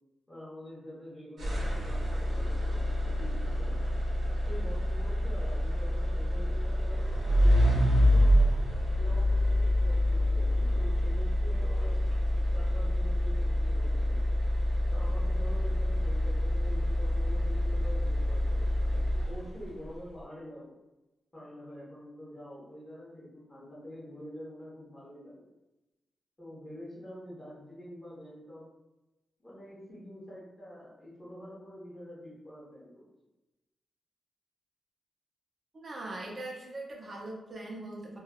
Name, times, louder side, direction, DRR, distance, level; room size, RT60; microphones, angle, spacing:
voice 1, 0.3-3.8 4.5-8.5 9.0-12.0 12.5-14.4 14.9-20.7 21.3-25.5 26.4-28.7 29.4-33.0, equal, 15° left, -7 dB, 1.0 m, -47 dB
sound 1, 1.4-19.7, left 1 dB, 75° right, 0.9 m, -27 dB
voice 2, 35.7-38.2, right 2 dB, 35° right, -2 dB, 0.6 m, -41 dB
3.2 x 2.3 x 2.3 m, 1.0 s
wide cardioid pair, 170°, 0 cm